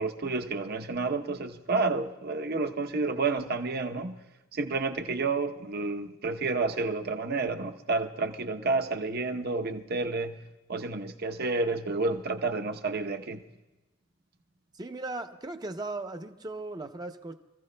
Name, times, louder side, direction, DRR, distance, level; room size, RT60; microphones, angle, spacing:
voice 1, 0.0-4.2 4.5-10.4 10.7-13.4, right 3 dB, 50° right, 7 dB, 0.8 m, -30 dB
voice 2, 14.8-17.3, right 2 dB, 20° right, 7 dB, 0.6 m, -37 dB
27.5 x 15.0 x 2.2 m, 1.1 s
head